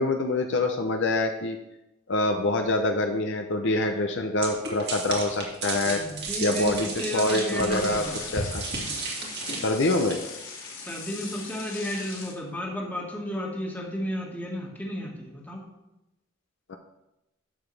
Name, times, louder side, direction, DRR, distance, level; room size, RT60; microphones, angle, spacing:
voice 1, 0.0-1.6 2.1-6.0 6.4-8.0 8.3-8.6 9.6-10.2 16.7-16.8, left 2 dB, 60° left, 4 dB, 0.7 m, -25 dB
sound 1, 4.4-10.2, right 3 dB, 50° right, 2.0 m, -34 dB
voice 2, 5.9-8.2 10.8-15.6, equal, 10° left, -2 dB, 1.7 m, -33 dB
sound 2, 7.7-12.3, left 4 dB, 85° left, 2.4 m, -39 dB
11.0 x 7.0 x 3.3 m, 0.92 s
head